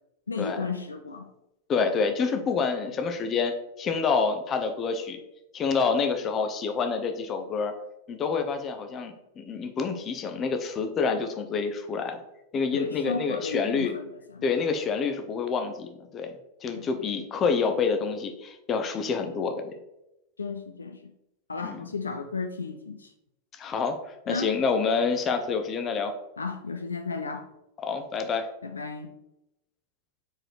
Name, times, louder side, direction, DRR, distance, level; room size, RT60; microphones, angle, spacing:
voice 1, 0.3-1.3 12.7-14.5 16.7-17.0 20.4-21.1 21.5-23.1 24.3-24.5 26.4-27.5 28.6-29.1, left 4 dB, 75° left, 7 dB, 0.5 m, -34 dB
voice 2, 1.7-5.2 5.5-7.7 8.1-12.2 12.5-13.9 14.4-16.3 16.6-19.7 21.6-21.8 23.5-24.0 24.3-26.1 27.8-28.5, left 5 dB, 25° left, 6 dB, 0.8 m, -27 dB
4.8 x 4.4 x 4.7 m, 0.88 s
figure-of-eight pair, 90°, 0 cm